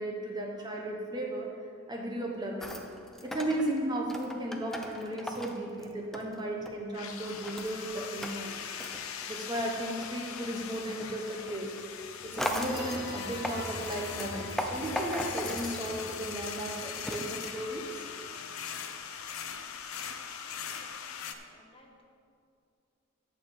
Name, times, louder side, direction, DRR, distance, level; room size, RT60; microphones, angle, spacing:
voice 1, 0.0-1.5 1.9-2.8 3.2-8.6 9.3-11.7 12.2-18.0, right 1 dB, 20° right, -1 dB, 0.9 m, -35 dB
sound 1, 2.6-6.8 7.1-18.4 18.9-19.0, equal, ahead, 0.5 m, -39 dB
sound 2, 6.9-21.3, left 7 dB, 90° left, 0.7 m, -41 dB
sound 3, 12.1-17.8, left 1 dB, 50° left, 1.1 m, -44 dB
voice 2, 20.7-22.0, left 1 dB, 25° left, 0 dB, 1.1 m, -62 dB
10.5 x 5.0 x 7.5 m, 2.4 s
head